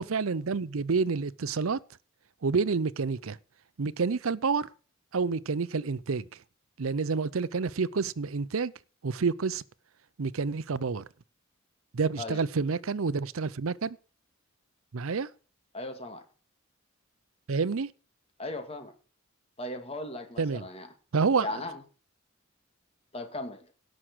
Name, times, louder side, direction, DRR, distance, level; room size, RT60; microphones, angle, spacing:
voice 1, 0.0-1.8 2.4-3.4 3.8-4.7 5.1-6.2 6.8-8.7 9.0-9.6 10.2-11.0 11.9-14.0 14.9-15.3 17.5-17.9 20.4-20.7 21.1-21.6, right 4 dB, 85° right, 0.6 m, -28 dB
voice 2, 15.7-16.2 18.4-18.9 19.6-20.9 21.4-21.8 23.1-23.7, left 2 dB, 30° left, 2.3 m, -37 dB
17.5 x 6.3 x 6.2 m
head